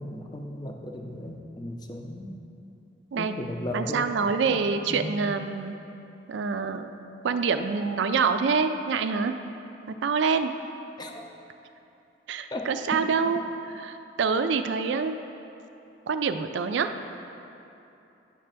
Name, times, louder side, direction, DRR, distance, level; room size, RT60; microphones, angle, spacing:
voice 1, 0.0-2.4 3.2-4.1 4.6-5.1 11.0-11.2 12.5-12.7, left 1 dB, 20° left, 2 dB, 0.5 m, -36 dB
voice 2, 3.7-5.7 6.3-6.9 7.2-9.3 9.9-10.5 12.3-13.4 13.7-15.2 16.1-16.9, right 5 dB, 75° right, 9 dB, 0.4 m, -26 dB
9.9 x 3.3 x 6.7 m, 2.8 s
head